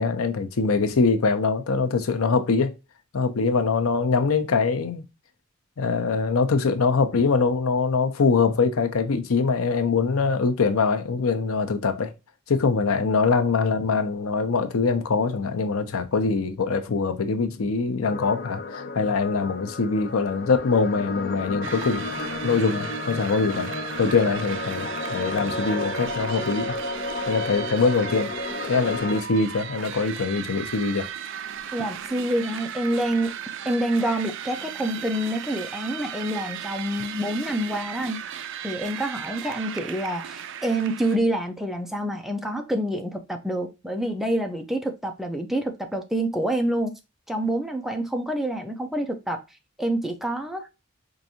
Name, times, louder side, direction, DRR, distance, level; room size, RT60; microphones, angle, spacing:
voice 1, 0.0-2.7 3.1-5.0 5.8-12.1 12.5-26.8 27.3-28.3 28.6-31.1, left 4 dB, 90° left, 0.6 m, -23 dB
sound 1, 18.0-29.2, left 2 dB, 45° left, 0.6 m, -32 dB
sound 2, 21.6-41.2, right 9 dB, 60° right, 0.4 m, -36 dB
voice 2, 31.7-33.3 33.6-38.2 38.6-47.0 47.3-49.4 49.8-50.7, right 1 dB, ahead, 0.5 m, -27 dB
4.6 x 2.6 x 2.7 m
head